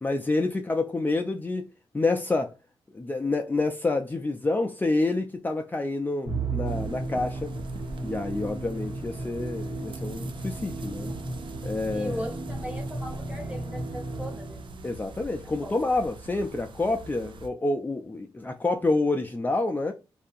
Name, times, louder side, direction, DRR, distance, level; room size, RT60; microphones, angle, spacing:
voice 1, 0.0-1.7 1.9-2.5 2.9-7.6 8.0-11.1 11.6-12.2 14.8-19.9, left 2 dB, 20° left, 0.3 m, -28 dB
Musical instrument, 6.3-14.8, right 2 dB, 75° right, 1.1 m, -34 dB
sound 1, 6.6-17.5, right 3 dB, 60° right, 0.4 m, -44 dB
voice 2, 11.9-14.9 15.6-15.7, equal, 15° right, 1.0 m, -38 dB
2.7 x 2.3 x 2.5 m
cardioid pair, 60°, 10 cm